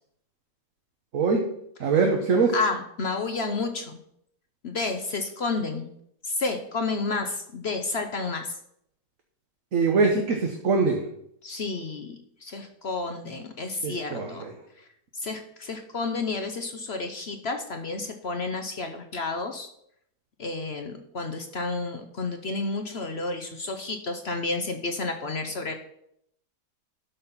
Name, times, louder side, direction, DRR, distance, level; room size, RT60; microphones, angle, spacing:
voice 1, 1.8-2.5 9.7-11.0 13.8-14.5, right 4 dB, 55° right, 2 dB, 1.3 m, -23 dB
voice 2, 2.5-4.0 4.6-5.9 6.2-8.5 11.4-14.4 15.1-19.7 20.4-25.7, left 3 dB, 50° left, 6 dB, 0.8 m, -31 dB
12.0 x 4.3 x 5.7 m, 0.72 s
omnidirectional pair, 1.8 m